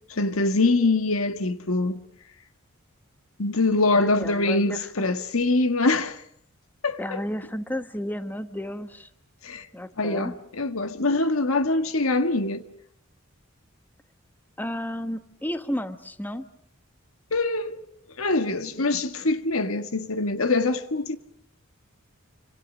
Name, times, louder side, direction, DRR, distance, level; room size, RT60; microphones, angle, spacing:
voice 1, 0.1-2.0 3.4-6.2 6.8-7.2 9.4-9.7 10.0-12.6 17.3-17.8 18.2-21.2, left 2 dB, 80° left, 1.7 m, -24 dB
voice 2, 3.9-5.1 7.0-9.1 9.7-10.3 14.6-16.4, equal, 10° left, 1.1 m, -32 dB
27.0 x 26.0 x 6.2 m
head